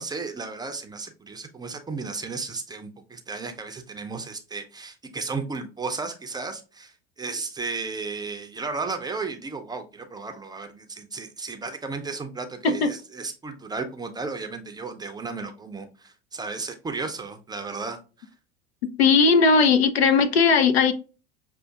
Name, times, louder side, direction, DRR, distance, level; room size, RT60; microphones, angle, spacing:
voice 1, 0.0-18.3, right 4 dB, 15° right, 0.5 m, -34 dB
voice 2, 19.0-20.9, left 5 dB, 75° left, 0.6 m, -18 dB
6.3 x 2.4 x 2.3 m
figure-of-eight pair, 75°, 32 cm